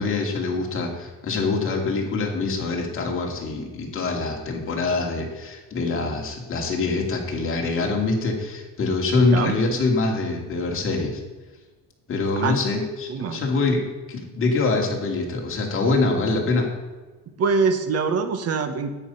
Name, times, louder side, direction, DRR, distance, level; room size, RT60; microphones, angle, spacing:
voice 1, 0.0-11.2 12.1-16.7, left 3 dB, 35° left, 0 dB, 2.6 m, -24 dB
voice 2, 13.1-13.4 17.4-18.9, right 5 dB, 40° right, 9 dB, 1.3 m, -23 dB
10.0 x 8.7 x 5.6 m, 1.3 s
cardioid pair, 140°, 36 cm